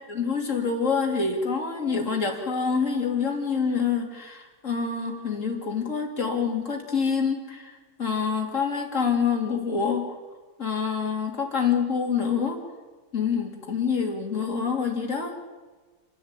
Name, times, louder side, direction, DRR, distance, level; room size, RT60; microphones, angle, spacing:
voice 1, 0.1-10.1 10.6-12.6 13.1-15.4, left 6 dB, 40° left, 2 dB, 3.4 m, -26 dB
29.5 x 11.0 x 9.0 m, 1.3 s
omnidirectional pair, 1.9 m